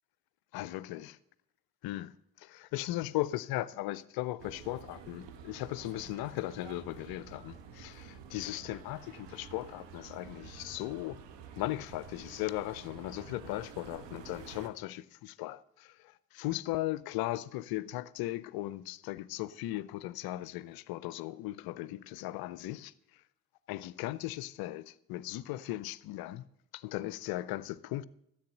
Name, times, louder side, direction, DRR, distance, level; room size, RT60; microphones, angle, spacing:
voice 1, 0.5-1.2 1.8-11.2 11.6-23.2 23.7-26.4 26.7-28.0, left 16 dB, 50° left, 0.5 m, -37 dB
sound 1, 4.4-14.7, right 6 dB, 55° right, 1.4 m, -50 dB
14.0 x 7.8 x 6.5 m
figure-of-eight pair, 45°, 49 cm